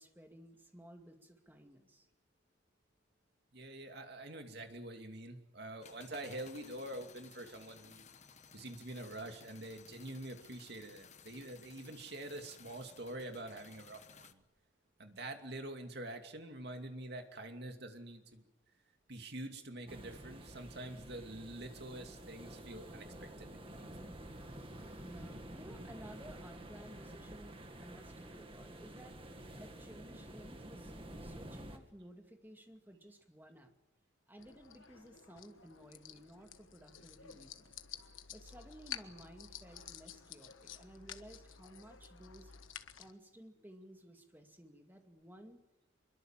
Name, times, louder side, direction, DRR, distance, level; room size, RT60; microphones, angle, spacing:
voice 1, 0.0-2.1 25.0-29.2 29.6-30.9 31.2-33.7 34.3-37.8 38.3-42.5 43.0-45.6, equal, 10° right, 4 dB, 2.4 m, -56 dB
voice 2, 3.5-8.0 8.5-14.4 15.0-18.4 19.1-24.1, right 1 dB, 55° right, 5 dB, 2.7 m, -46 dB
sound 1, 5.8-14.3, left 6 dB, 35° left, 1.1 m, -58 dB
sound 2, 19.9-31.8, right 1 dB, 25° right, 2.1 m, -50 dB
sound 3, 34.4-43.1, left 9 dB, 80° left, 1.4 m, -51 dB
25.0 x 22.5 x 7.5 m, 0.98 s
head